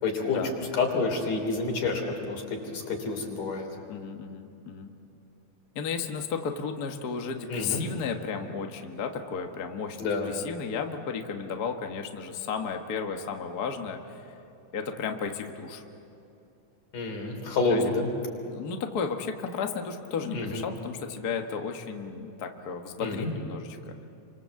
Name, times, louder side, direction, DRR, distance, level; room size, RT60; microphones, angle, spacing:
voice 1, 0.0-0.4 0.7-3.7 7.5-7.8 10.0-10.3 16.9-18.1 20.3-20.6 23.0-23.3, left 3 dB, 80° left, 2 dB, 5.0 m, -28 dB
voice 2, 3.9-4.9 5.7-14.3 14.7-15.8 17.7-17.8 18.4-23.9, left 6 dB, 45° left, 4 dB, 1.3 m, -34 dB
29.0 x 25.5 x 7.6 m, 2.8 s
omnidirectional pair, 3.6 m